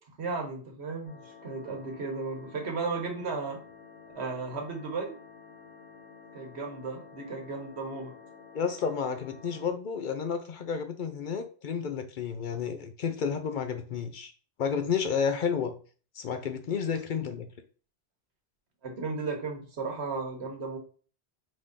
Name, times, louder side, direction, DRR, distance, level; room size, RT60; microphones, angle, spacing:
voice 1, 0.2-3.6 4.1-5.1 6.3-8.1 18.8-20.8, right 4 dB, 85° right, 2 dB, 1.4 m, -35 dB
sound 1, 1.0-9.7, left 5 dB, 80° left, 1.3 m, -51 dB
voice 2, 8.5-14.3 14.6-15.7 16.2-17.5, left 6 dB, 60° left, 8 dB, 0.6 m, -31 dB
5.0 x 2.6 x 3.6 m, 0.39 s
omnidirectional pair, 1.1 m